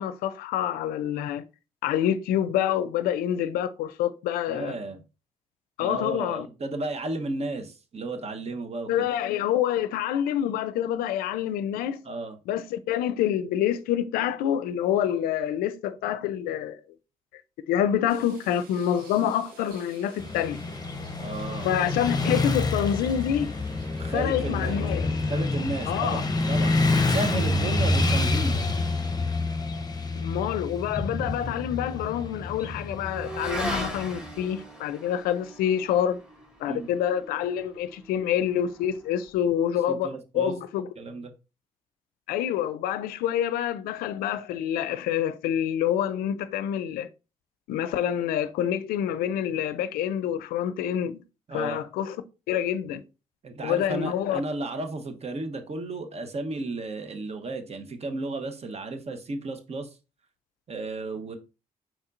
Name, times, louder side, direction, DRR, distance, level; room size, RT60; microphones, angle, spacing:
voice 1, 0.0-1.4 1.8-4.7 5.8-6.5 8.9-12.0 12.5-16.8 17.7-20.6 21.6-23.5 24.1-25.1 25.9-26.2 30.1-36.2 36.6-40.9 42.3-47.1 47.7-51.2 51.5-52.2 52.5-53.0 53.6-54.4, left 10 dB, 85° left, 0.4 m, -27 dB
voice 2, 4.5-5.0 5.8-9.1 12.0-12.4 21.2-21.7 24.0-24.8 25.3-28.6 36.7-36.9 39.9-40.5 41.0-41.3 51.5-51.8 53.4-59.9 60.7-61.4, right 2 dB, 45° right, 1.0 m, -33 dB
sound 1, 18.1-30.3 30.7-30.8 33.2-33.3, right 3 dB, 85° right, 1.1 m, -51 dB
Motorcycle / Traffic noise roadway noise, 20.2-34.3, left 2 dB, 25° left, 0.8 m, -27 dB
Motorcycle / Accelerating revving vroom, 30.6-39.4, equal, 5° right, 1.8 m, -40 dB
4.3 x 4.3 x 2.5 m
supercardioid pair, 60°, 15 cm